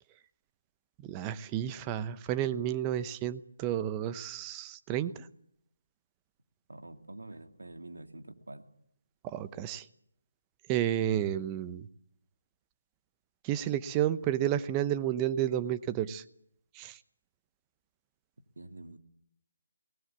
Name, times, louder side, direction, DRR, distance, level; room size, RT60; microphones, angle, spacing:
voice 1, 1.0-5.3 9.2-9.8 10.7-11.9 13.4-16.2 16.7-17.0, right 11 dB, 20° right, 13 dB, 0.9 m, -31 dB
voice 2, 6.7-8.7 18.6-19.0, right 2 dB, 80° right, 6 dB, 2.6 m, -46 dB
23.0 x 19.0 x 8.3 m, 0.72 s
figure-of-eight pair, 155°, 0 cm